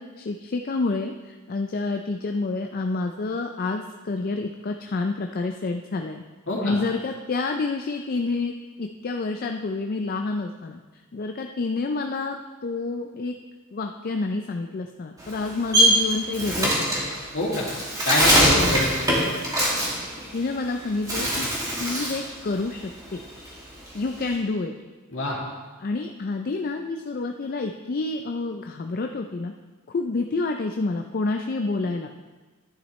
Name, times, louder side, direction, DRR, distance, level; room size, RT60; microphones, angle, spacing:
voice 1, 0.0-6.2 6.6-8.5 8.8-10.8 11.1-12.4 12.6-13.3 13.7-16.7 18.5-18.8 20.3-21.5 21.8-23.2 23.9-24.7 25.8-29.5 29.9-32.1, left 3 dB, 45° left, 4 dB, 0.4 m, -28 dB
Bird, 15.2-20.7 21.0-22.3 22.6-24.3, right 1 dB, 15° right, 2.3 m, -22 dB
voice 2, 17.3-17.7 18.0-18.9 25.1-25.4, left 1 dB, 65° left, -4 dB, 2.6 m, -25 dB
11.0 x 11.0 x 3.2 m, 1.3 s
head